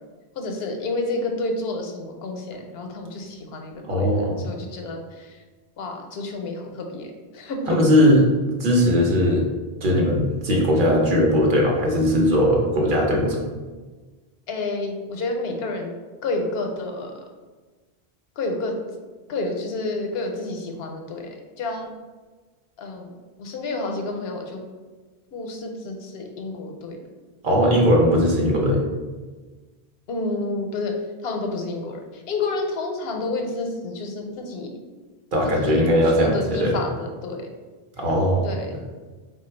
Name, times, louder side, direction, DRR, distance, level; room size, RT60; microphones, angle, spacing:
voice 1, 0.4-5.2 5.8-7.1 7.3-7.8 14.5-16.0 16.2-17.1 18.4-18.7 19.3-21.3 21.6-21.9 22.8-23.1 23.4-24.6 25.3-27.0 30.1-30.9 31.2-32.0 32.3-34.7 35.4-35.8 36.1-37.5 38.4-38.8, left 2 dB, 80° left, 3 dB, 0.8 m, -29 dB
voice 2, 3.9-4.4 7.7-8.2 8.6-9.5 9.8-13.4 27.4-28.8 35.3-36.8 38.0-38.5, equal, 60° right, -1 dB, 0.8 m, -19 dB
3.2 x 2.2 x 4.3 m, 1.3 s
omnidirectional pair, 1.0 m